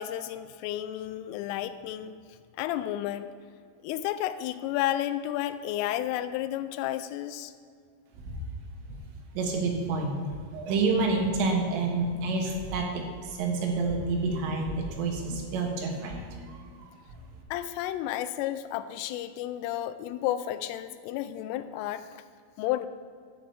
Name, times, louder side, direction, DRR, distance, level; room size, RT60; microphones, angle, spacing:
voice 1, 0.0-2.2 2.6-3.3 3.8-7.5 17.5-22.2 22.6-22.9, left 12 dB, 85° left, 11 dB, 3.0 m, -32 dB
voice 2, 9.4-17.2, right 3 dB, 80° right, 1 dB, 3.9 m, -29 dB
12.0 x 5.0 x 7.9 m, 2.2 s
omnidirectional pair, 5.9 m